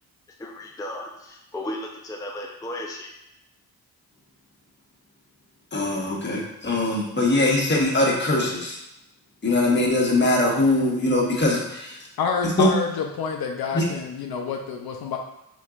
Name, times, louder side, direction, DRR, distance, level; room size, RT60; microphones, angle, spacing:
voice 1, 0.4-3.1, left 1 dB, 10° left, 0 dB, 0.5 m, -35 dB
voice 2, 5.7-8.8 9.4-12.1 12.6-12.7 13.7-13.8, left 2 dB, 30° left, -3 dB, 1.3 m, -22 dB
voice 3, 12.2-15.2, left 5 dB, 70° left, 2 dB, 0.6 m, -28 dB
4.3 x 4.0 x 2.4 m, 0.86 s
cardioid pair, 60°, 38 cm